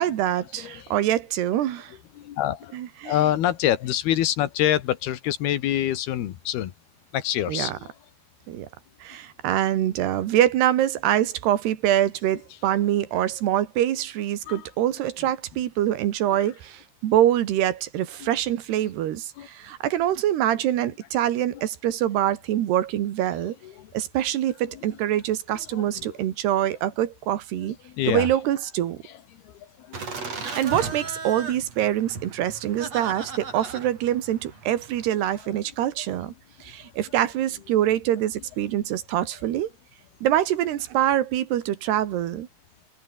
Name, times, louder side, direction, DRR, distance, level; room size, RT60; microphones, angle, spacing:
voice 1, 0.0-2.0 2.7-3.2 7.5-7.8 8.5-8.7 9.0-23.6 23.9-27.8 28.1-29.0 30.3-36.3 36.6-39.7 40.2-42.5, right 12 dB, 80° right, 3.7 m, -25 dB
voice 2, 0.6-0.9 2.2-2.8 3.0-6.7 7.1-7.9 14.5-14.7 15.2-15.3 16.3-16.5 18.2-18.3 19.4-19.5 23.6-23.9 24.7-24.8 25.7-26.1 27.9-28.3 29.0-29.1 29.5-30.4, left 12 dB, 75° left, 3.4 m, -27 dB
Laughter, 29.9-35.1, right 4 dB, 40° right, 6.3 m, -36 dB
open air
omnidirectional pair, 4.7 m